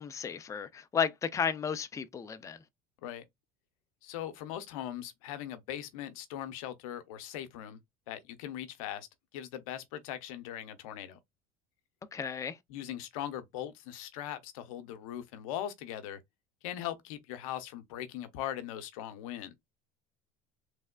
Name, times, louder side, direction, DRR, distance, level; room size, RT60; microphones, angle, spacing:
voice 1, 0.0-2.6 12.1-12.6, left 7 dB, 20° left, 0.4 m, -33 dB
voice 2, 4.0-7.8 8.1-9.1 9.3-11.2 12.7-16.2 16.6-19.5, left 11 dB, 90° left, 0.7 m, -40 dB
3.3 x 3.2 x 2.2 m
supercardioid pair, 110°, 17 cm